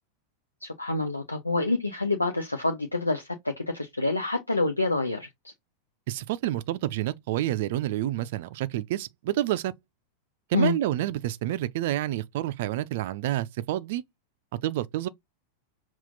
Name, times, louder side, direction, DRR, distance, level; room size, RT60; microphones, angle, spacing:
voice 1, 0.6-5.5 10.5-10.8, left 2 dB, 85° left, 0.6 m, -27 dB
voice 2, 6.1-9.7 10.5-14.0 14.6-15.1, right 14 dB, 50° right, 0.4 m, -28 dB
5.7 x 2.4 x 3.8 m
figure-of-eight pair, 90°, 0 cm